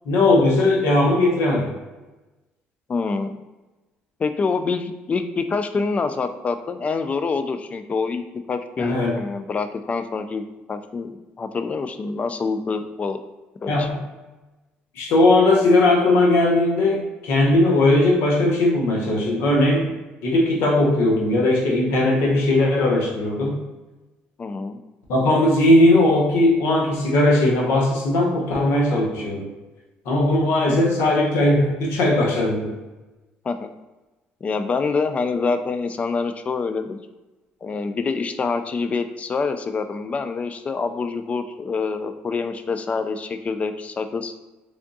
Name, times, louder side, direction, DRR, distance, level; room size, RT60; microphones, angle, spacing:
voice 1, 0.1-1.7 8.8-9.1 13.7-14.0 15.0-19.9 20.2-23.6 25.1-29.5 30.0-32.8, left 1 dB, 75° left, -1 dB, 0.9 m, -18 dB
voice 2, 2.9-3.4 4.2-13.2 13.6-13.9 24.4-24.8 30.6-30.8 33.4-33.7 34.4-37.0 37.6-44.3, left 4 dB, 35° left, 9 dB, 0.3 m, -26 dB
3.5 x 3.5 x 2.6 m, 1.1 s
supercardioid pair, 85°, 4 cm